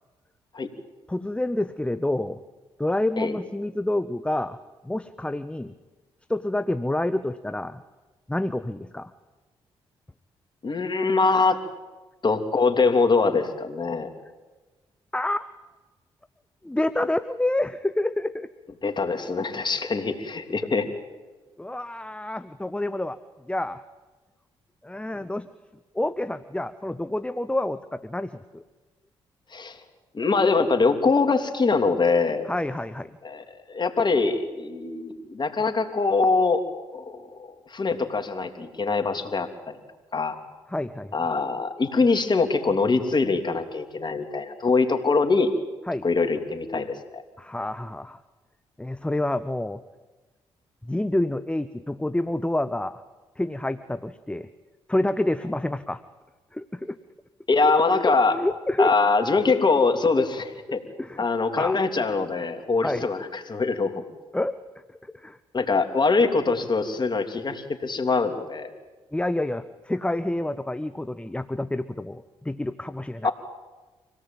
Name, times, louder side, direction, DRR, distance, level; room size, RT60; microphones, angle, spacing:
voice 1, 1.1-2.4 2.8-4.6 4.8-5.7 6.3-7.8 8.3-9.1 15.1-15.5 16.6-18.5 21.6-23.2 23.5-23.8 24.8-25.5 25.9-28.6 32.5-33.1 40.7-41.2 45.9-46.0 47.4-48.2 48.8-49.8 50.8-53.0 53.4-54.5 54.9-56.0 56.5-57.0 58.0-58.9 60.2-60.3 61.0-61.2 61.6-61.8 62.8-63.1 64.3-64.6 65.1-65.4 69.1-73.3, left 1 dB, 10° left, 12 dB, 0.9 m, -28 dB
voice 2, 10.6-11.6 12.2-14.1 18.8-20.8 29.5-29.8 30.1-32.5 33.2-36.6 36.9-39.8 40.1-40.4 41.1-45.5 46.0-47.2 57.5-58.3 58.8-60.4 60.7-60.8 61.2-64.0 65.5-68.7 73.2-73.3, left 4 dB, 40° left, 6 dB, 3.2 m, -23 dB
25.5 x 18.0 x 9.1 m, 1.2 s
supercardioid pair, 50°, 11 cm